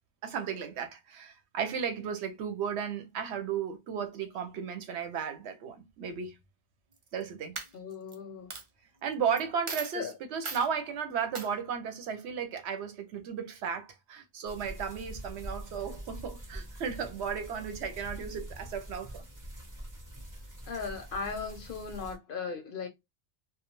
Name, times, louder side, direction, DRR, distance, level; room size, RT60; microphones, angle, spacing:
voice 1, 0.2-6.4 7.1-7.5 9.0-19.2, right 7 dB, 75° right, 0.9 m, -34 dB
Coin (dropping), 6.9-7.2 7.5-8.1 8.5-8.6 9.4-9.5 9.7-10.0 10.4-10.7 11.3-11.5, right 4 dB, 50° right, 0.4 m, -38 dB
voice 2, 7.7-8.5 9.9-10.1 20.7-22.9, left 5 dB, 60° left, 0.6 m, -37 dB
Make Fire, 14.5-22.2, right 1 dB, 20° right, 0.7 m, -44 dB
2.3 x 2.1 x 2.9 m
omnidirectional pair, 1.2 m